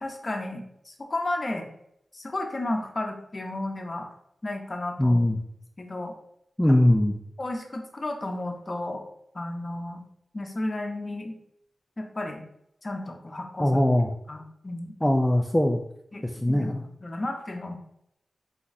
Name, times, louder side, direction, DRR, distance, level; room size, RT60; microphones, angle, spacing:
voice 1, 0.0-1.7 2.1-4.1 4.4-5.3 5.8-6.1 7.4-9.0 9.3-10.0 10.3-11.4 12.0-12.4 12.8-13.7 14.3-14.9 16.1-16.7 17.0-17.7, left 2 dB, 40° left, 3 dB, 0.8 m, -33 dB
voice 2, 5.0-5.4 6.6-7.2 13.6-14.1 15.0-15.8 16.2-16.8, left 1 dB, 10° left, 3 dB, 0.4 m, -21 dB
4.2 x 2.3 x 4.0 m, 0.74 s
wide cardioid pair, 70°, 0 cm